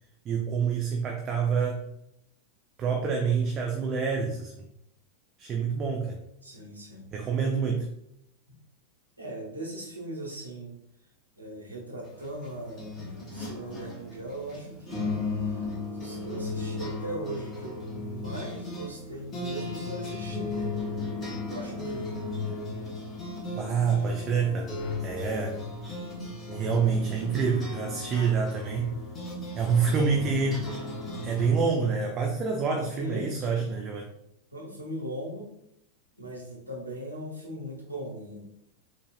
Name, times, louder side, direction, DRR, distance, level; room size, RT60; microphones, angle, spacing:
voice 1, 0.2-1.9 2.8-4.7 5.4-6.2 7.1-7.9 23.6-24.7 25.0-25.6 26.5-29.0 29.6-30.7 31.2-34.0, right 5 dB, 30° right, 2 dB, 0.6 m, -27 dB
voice 2, 6.4-7.1 9.2-10.8 11.4-15.7 15.9-20.7 21.5-22.3 32.7-33.7 34.5-35.5 36.2-38.4, right 1 dB, 85° right, -4 dB, 1.4 m, -39 dB
sound 1, 12.1-31.5, left 3 dB, 25° left, 1.2 m, -35 dB
6.5 x 2.8 x 2.4 m, 0.76 s
figure-of-eight pair, 90°, 0 cm